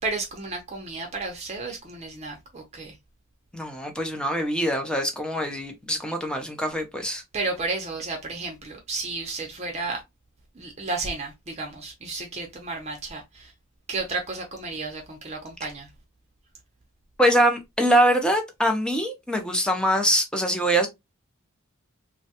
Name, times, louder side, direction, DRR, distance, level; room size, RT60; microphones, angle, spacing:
voice 1, 0.0-3.0 7.3-10.0 10.5-13.5 13.9-15.9, right 3 dB, 30° right, 0.6 m, -32 dB
voice 2, 3.5-7.2 17.2-20.9, right 1 dB, 5° left, 0.6 m, -23 dB
3.0 x 2.3 x 2.7 m
head